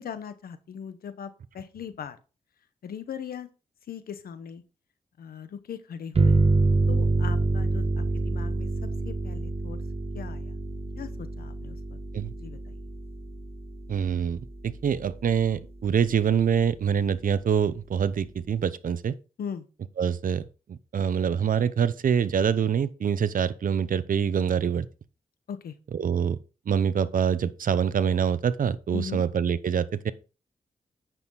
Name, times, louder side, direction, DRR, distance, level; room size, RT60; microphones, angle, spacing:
voice 1, 0.0-2.2 2.8-3.5 3.9-4.6 5.2-6.4 6.9-8.7 9.0-9.8 10.1-10.5 11.0-12.0 12.4-12.8 19.4-19.6 25.5-25.7 28.9-29.2, left 7 dB, 90° left, 1.1 m, -39 dB
sound 1, 6.2-15.4, right 3 dB, 40° right, 1.2 m, -27 dB
voice 2, 13.9-19.1 20.0-20.4 20.7-24.9 25.9-26.4 26.7-30.1, right 7 dB, 65° right, 0.7 m, -25 dB
9.2 x 6.3 x 4.0 m
cardioid pair, 70°, 15 cm